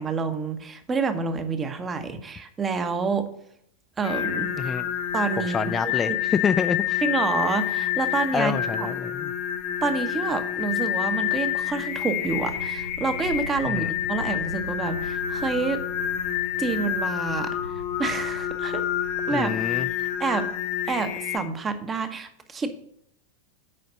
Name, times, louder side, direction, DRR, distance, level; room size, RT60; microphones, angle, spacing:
voice 1, 0.0-3.3 4.0-4.7 5.1-6.2 7.0-8.9 9.8-15.8 16.6-18.8 19.3-19.5 20.2-20.5 20.9-22.7, right 4 dB, 20° right, 8 dB, 1.0 m, -28 dB
Singing, 4.0-21.4, left 10 dB, 50° left, 1.0 m, -28 dB
voice 2, 5.5-7.0 8.3-9.3 13.7-13.9 19.3-19.9, left 6 dB, 20° left, 9 dB, 0.4 m, -27 dB
sound 1, 12.2-19.9, left 1 dB, 80° left, 0.4 m, -41 dB
7.7 x 5.2 x 6.7 m, 0.70 s
figure-of-eight pair, 90°, 0 cm